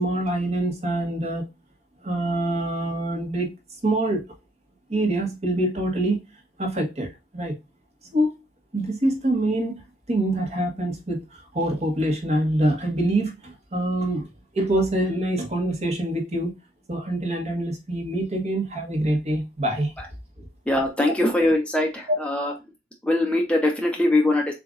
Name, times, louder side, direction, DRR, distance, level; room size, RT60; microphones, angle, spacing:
voice 1, 0.0-1.5 2.0-3.5 3.8-4.2 4.9-6.2 6.6-7.1 7.3-7.5 8.1-8.3 8.7-9.7 10.1-14.3 14.5-16.6 16.9-19.9 20.4-20.5, right 1 dB, 40° right, 1.1 m, -25 dB
voice 2, 20.7-22.5 23.0-24.5, left 1 dB, 5° left, 0.7 m, -22 dB
7.0 x 2.5 x 2.5 m
head